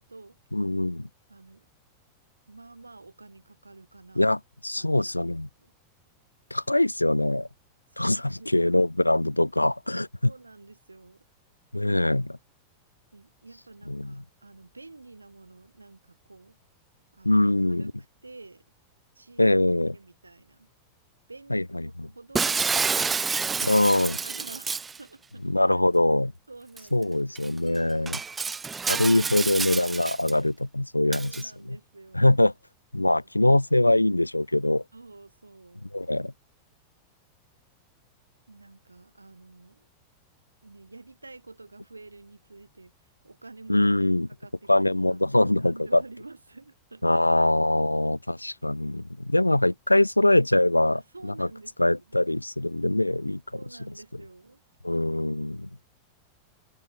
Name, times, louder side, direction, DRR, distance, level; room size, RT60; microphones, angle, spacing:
voice 1, 0.0-0.4 1.3-1.7 2.5-4.3 4.7-5.3 5.6-5.7 7.9-8.9 10.2-11.2 13.1-16.6 17.1-17.4 17.8-17.9 18.2-18.6 19.1-19.4 19.9-20.7 21.3-23.8 24.2-25.8 26.5-27.6 31.1-32.3 33.0-33.3 34.9-35.9 38.5-39.9 40.6-42.9 43.2-43.9 44.4-47.3 49.2-49.4 50.9-52.0 53.5-54.6, right 3 dB, 80° right, 3.9 m, -49 dB
voice 2, 0.5-1.1 4.2-5.5 6.5-7.5 8.0-10.3 11.7-12.4 13.9-14.2 17.2-17.9 19.4-20.0 21.5-22.1 23.6-24.2 25.4-26.3 26.9-28.2 28.9-31.4 32.1-32.5 32.9-34.8 35.9-36.3 43.7-44.3 44.7-46.0 47.0-51.5 51.8-53.4 54.8-55.7, left 1 dB, 85° left, 0.6 m, -23 dB
Shatter, 22.3-25.0 26.8-26.9 27.3-27.5 28.1-30.3 31.1-31.4, right 5 dB, 15° right, 0.3 m, -28 dB
figure-of-eight pair, 90°, 0 cm